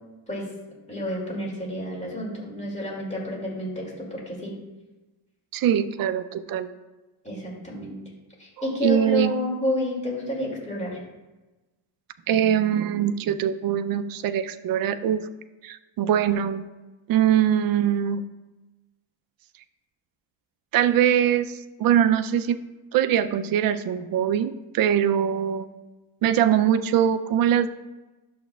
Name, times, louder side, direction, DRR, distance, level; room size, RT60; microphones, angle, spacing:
voice 1, 0.9-4.5 7.2-8.0 8.4-11.0, left 1 dB, 15° left, -3 dB, 2.3 m, -30 dB
voice 2, 5.5-6.7 8.8-9.3 12.3-15.2 15.6-16.6 17.1-18.2 20.7-22.6 22.9-25.7 26.2-27.7, right 9 dB, 50° right, 10 dB, 0.5 m, -22 dB
11.0 x 7.2 x 2.3 m, 1.1 s
cardioid pair, 165°, 48 cm